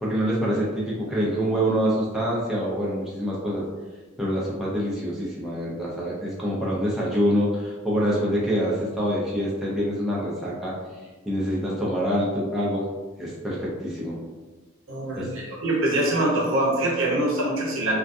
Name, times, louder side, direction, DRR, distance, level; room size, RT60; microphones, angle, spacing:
voice 1, 0.0-3.6 4.2-10.7 11.3-12.9 13.2-14.2 15.2-15.3, equal, ahead, -7 dB, 0.3 m, -25 dB
voice 2, 14.9-18.0, right 1 dB, 70° right, -3 dB, 0.7 m, -24 dB
2.3 x 2.2 x 2.5 m, 1.3 s
head